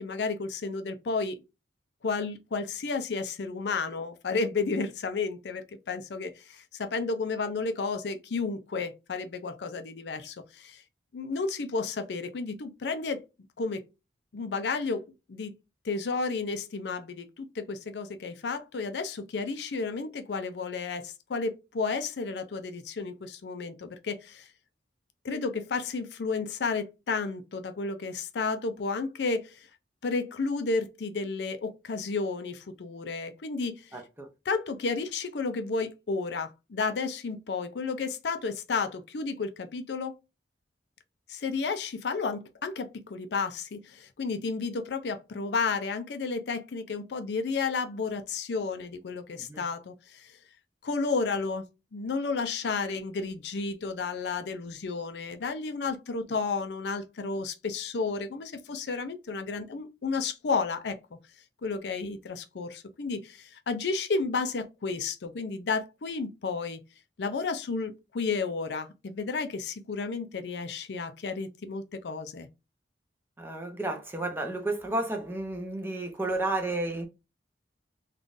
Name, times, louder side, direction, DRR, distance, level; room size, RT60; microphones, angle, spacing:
voice 1, 0.0-1.4 2.0-10.8 11.1-13.2 13.6-13.8 14.3-15.5 15.8-24.5 25.2-29.7 30.0-33.9 34.5-40.2 41.3-50.4 50.8-51.6 51.9-61.0 61.6-66.8 67.2-72.5, left 4 dB, 70° left, 0.5 m, -32 dB
voice 2, 33.9-34.3 49.4-49.6 73.4-77.1, right 2 dB, 10° right, 0.6 m, -32 dB
3.6 x 2.4 x 2.5 m
head